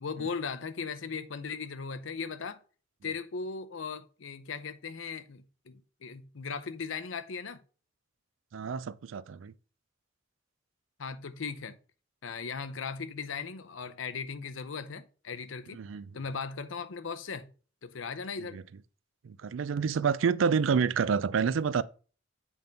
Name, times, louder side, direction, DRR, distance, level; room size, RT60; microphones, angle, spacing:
voice 1, 0.0-2.6 3.0-7.6 11.0-11.8 12.2-15.8 16.1-17.5 17.8-18.6, left 5 dB, 85° left, 0.7 m, -38 dB
voice 2, 8.5-9.5 15.7-16.0 18.5-18.6 19.2-21.8, right 6 dB, 80° right, 0.4 m, -28 dB
7.9 x 3.5 x 5.2 m
head